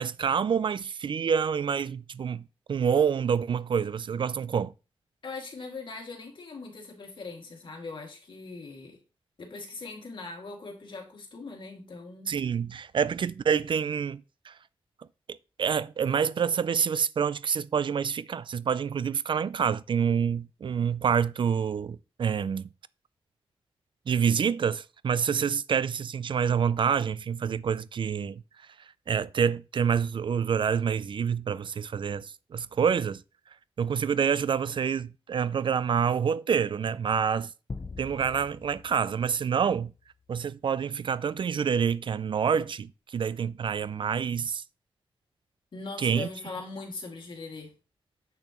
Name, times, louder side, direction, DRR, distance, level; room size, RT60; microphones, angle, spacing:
voice 1, 0.0-2.4 2.7-4.7 12.3-14.5 15.3-22.7 24.1-28.4 29.1-33.2 33.8-37.5 38.0-39.9 40.3-44.6 46.0-46.3, right 7 dB, 55° right, 0.3 m, -27 dB
voice 2, 5.2-9.0 9.4-12.3 45.7-47.7, left 3 dB, 55° left, 2.2 m, -40 dB
sound 1, 37.7-40.3, left 4 dB, 25° left, 0.4 m, -43 dB
8.3 x 6.6 x 3.0 m
wide cardioid pair, 120°, 10 cm